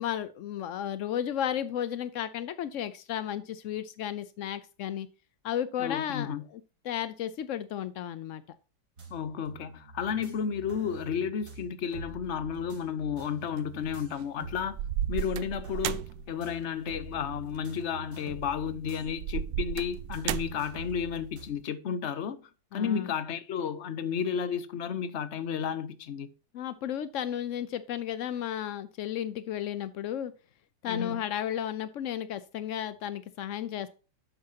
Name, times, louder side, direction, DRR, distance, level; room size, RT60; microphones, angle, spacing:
voice 1, 0.0-5.1 5.4-8.6 22.7-23.1 26.5-30.3 30.8-33.9, left 10 dB, 75° left, 0.7 m, -33 dB
voice 2, 5.8-6.4 9.1-14.8 15.1-26.3 30.8-31.2, left 7 dB, 50° left, 0.9 m, -32 dB
sound 1, 9.0-21.5, right 4 dB, 55° right, 3.0 m, -46 dB
sound 2, 13.6-14.1 14.8-16.3 17.5-17.7 19.0-20.7, right 11 dB, 80° right, 1.3 m, -33 dB
11.5 x 8.2 x 2.8 m
omnidirectional pair, 2.0 m